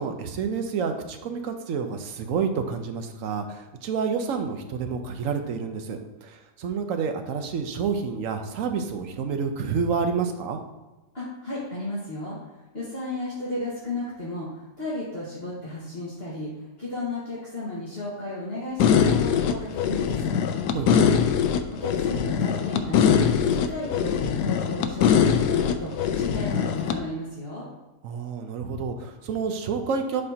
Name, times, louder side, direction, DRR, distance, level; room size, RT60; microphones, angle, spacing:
voice 1, 0.0-10.6 20.7-21.1 28.0-30.2, right 5 dB, 60° right, 6 dB, 1.0 m, -29 dB
voice 2, 11.1-16.5 16.8-20.3 21.8-27.7, left 2 dB, 35° left, -9 dB, 1.8 m, -34 dB
sound 1, 18.8-27.0, left 8 dB, 75° left, 1.2 m, -22 dB
11.5 x 4.3 x 2.9 m, 1.1 s
omnidirectional pair, 1.8 m